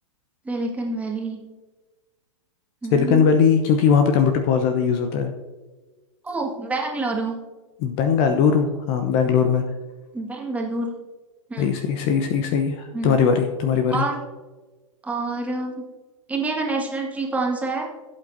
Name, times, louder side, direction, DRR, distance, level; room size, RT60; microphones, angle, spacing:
voice 1, 0.5-1.4 2.8-3.4 6.2-7.4 10.1-10.9 11.5-11.7 12.9-13.2 13.9-14.2 15.0-15.8 16.3-17.9, right 3 dB, 10° right, 0 dB, 1.9 m, -27 dB
voice 2, 2.9-5.3 7.8-9.6 11.6-14.0, left 6 dB, 35° left, 6 dB, 0.9 m, -20 dB
16.5 x 8.3 x 2.7 m, 1.2 s
figure-of-eight pair, 105°, 16 cm